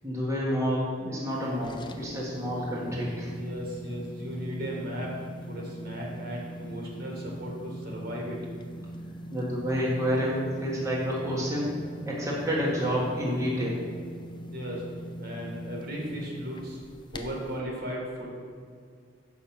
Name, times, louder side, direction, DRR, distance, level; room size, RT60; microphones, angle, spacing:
voice 1, 0.0-3.3 9.3-11.7 12.0-13.8, equal, 15° right, -6 dB, 1.5 m, -29 dB
sound 1, 1.3-17.6, equal, 25° left, 0.6 m, -41 dB
voice 2, 3.3-5.2 5.5-8.4 14.5-14.9 15.2-16.8 17.1-18.3, equal, 60° right, -2 dB, 2.1 m, -36 dB
7.3 x 5.6 x 6.0 m, 2.2 s
head